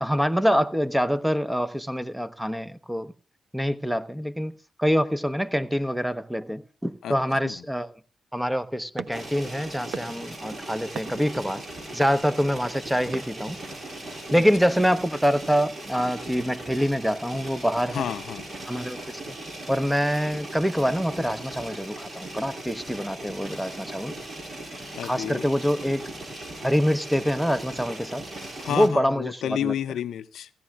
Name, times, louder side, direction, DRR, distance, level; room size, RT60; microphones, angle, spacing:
voice 1, 0.0-3.1 3.5-7.9 8.3-11.6 11.9-13.6 14.3-18.1 18.7-19.4 19.7-24.1 25.0-26.0 26.6-28.2 28.7-29.7, equal, 5° right, 0.9 m, -25 dB
sound 1, 9.0-14.1, right 5 dB, 70° right, 1.1 m, -42 dB
sound 2, 9.1-28.9, right 1 dB, 50° right, 5.6 m, -39 dB
voice 2, 17.9-18.5 24.9-25.5 28.6-30.5, left 10 dB, 75° left, 0.5 m, -30 dB
17.0 x 15.5 x 2.4 m
supercardioid pair, 45°, 0 cm